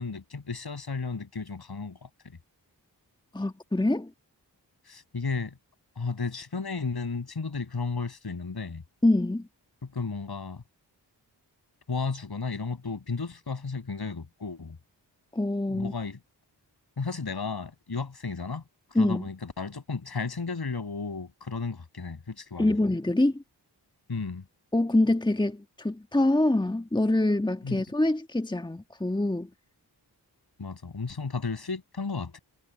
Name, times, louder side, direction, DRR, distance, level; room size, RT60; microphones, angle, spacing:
voice 1, 0.0-2.4 4.9-5.6 6.0-8.8 9.8-10.6 11.9-14.8 15.7-16.2 17.0-18.6 18.9-22.7 24.1-24.4 27.6-27.8 30.6-32.4, left 4 dB, 60° left, 6.5 m, -34 dB
voice 2, 3.3-4.1 9.0-9.5 15.3-15.9 18.9-19.3 22.6-23.4 24.7-29.5, left 1 dB, 10° left, 1.5 m, -25 dB
cardioid pair, 40°, 43 cm